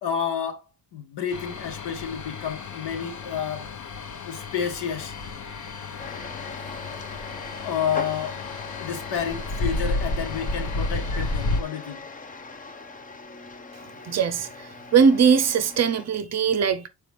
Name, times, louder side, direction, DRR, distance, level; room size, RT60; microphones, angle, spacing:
voice 1, 0.0-3.7 4.3-5.1 6.2-6.3 7.6-8.4 8.8-12.1, left 7 dB, 75° left, 1.9 m, -30 dB
sound 1, 1.3-11.6, left 2 dB, 45° left, 1.0 m, -32 dB
sound 2, 6.0-16.1, left 3 dB, 20° left, 0.6 m, -40 dB
voice 2, 14.1-14.5 14.9-16.9, right 6 dB, 40° right, 0.6 m, -20 dB
7.0 x 4.7 x 3.3 m
cardioid pair, 170°, 42 cm